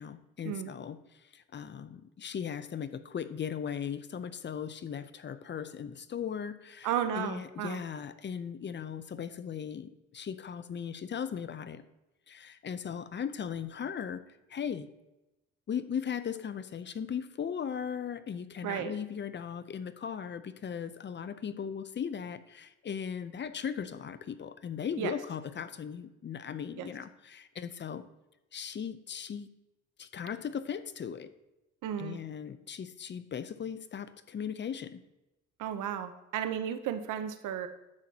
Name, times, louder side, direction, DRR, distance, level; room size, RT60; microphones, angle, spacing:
voice 1, 0.0-11.8 12.3-14.9 15.7-28.0 28.5-29.5 30.0-31.3 32.0-35.0, left 7 dB, 40° left, 13 dB, 0.6 m, -38 dB
voice 2, 6.8-7.8 18.6-18.9 25.0-25.1 26.8-26.9 31.8-32.2 35.6-37.7, right 9 dB, 90° right, 10 dB, 0.8 m, -34 dB
10.5 x 7.6 x 2.9 m, 0.96 s
cardioid pair, 90°, 30 cm